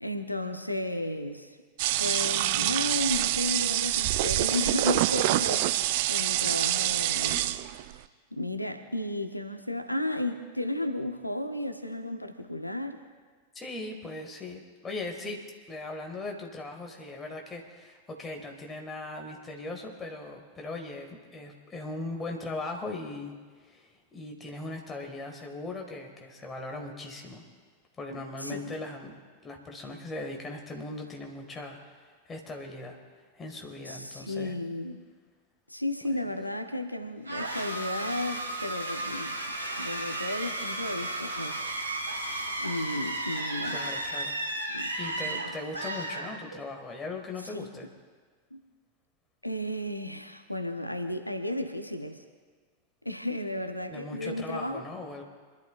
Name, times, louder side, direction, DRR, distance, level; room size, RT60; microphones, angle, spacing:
voice 1, 0.0-1.6 2.0-7.4 8.3-13.0 28.1-28.7 33.8-35.0 35.7-39.4 39.8-41.6 42.6-43.8 44.7-44.9 45.2-45.5 47.4-47.9 48.5-48.6 49.4-52.2 53.0-54.8, left 1 dB, 90° left, 7 dB, 0.7 m, -34 dB
sound 1, 1.8-7.9, right 14 dB, 50° right, 0.4 m, -26 dB
voice 2, 13.5-23.3 23.6-27.4 28.0-29.1 29.4-31.8 32.3-33.0 33.3-34.5 43.6-44.4 45.0-47.9 53.9-55.2, left 2 dB, 20° left, 2 dB, 1.9 m, -39 dB
sound 2, 37.2-46.8, right 1 dB, 80° right, 1.8 m, -34 dB
27.0 x 11.5 x 2.5 m, 1.5 s
figure-of-eight pair, 90°, 0 cm